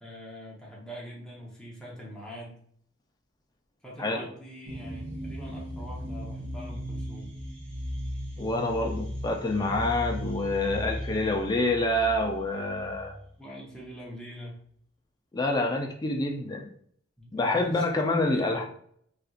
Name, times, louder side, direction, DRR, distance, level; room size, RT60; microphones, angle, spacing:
voice 1, 0.0-2.6 3.8-7.3 13.4-14.6 17.2-18.6, equal, 5° left, -5 dB, 0.8 m, -43 dB
sound 1, 4.6-13.2, equal, 30° right, 0.7 m, -37 dB
voice 2, 8.4-13.1 15.3-16.7 17.3-18.6, left 2 dB, 20° left, 2 dB, 0.4 m, -27 dB
4.2 x 2.5 x 2.4 m, 0.63 s
head